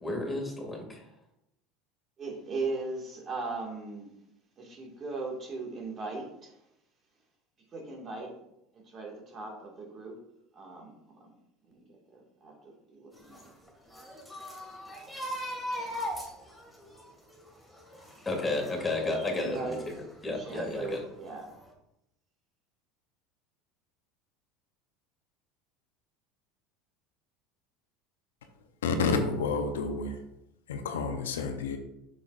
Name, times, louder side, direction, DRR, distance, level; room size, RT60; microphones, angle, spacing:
voice 1, 0.0-1.0 18.3-19.9 20.2-21.0, left 2 dB, 15° left, 0 dB, 2.5 m, -32 dB
voice 2, 2.2-4.1 4.6-6.5 7.7-8.3 8.7-10.1 10.5-11.2 11.6-11.8 12.1-13.5 19.0-19.9 20.4-21.5, right 3 dB, 40° right, 0 dB, 2.1 m, -38 dB
sound 1, 13.1-20.0 20.5-21.3 21.6-21.7, equal, ahead, 2.4 m, -40 dB
voice 3, 28.8-30.2 30.7-31.8, left 4 dB, 85° left, 6 dB, 0.7 m, -29 dB
7.0 x 6.5 x 2.6 m, 0.83 s
hypercardioid pair, 85°, 0 cm